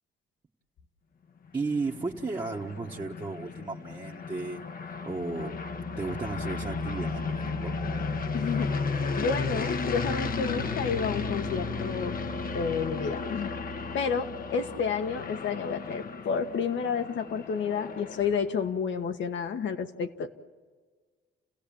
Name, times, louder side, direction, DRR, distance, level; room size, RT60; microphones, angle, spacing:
sound 1, 1.5-18.7, left 5 dB, 45° left, 1.1 m, -34 dB
voice 1, 1.5-4.6 5.0-5.6 6.0-7.8, right 3 dB, 20° right, -3 dB, 1.4 m, -34 dB
sound 2, 5.2-15.9, right 6 dB, 40° right, 1.9 m, -41 dB
voice 2, 8.3-8.7 9.2-12.2 12.5-13.5 13.9-20.4, left 6 dB, 70° left, 7 dB, 1.6 m, -30 dB
29.5 x 16.5 x 8.8 m, 1.5 s
cardioid pair, 90°, 20 cm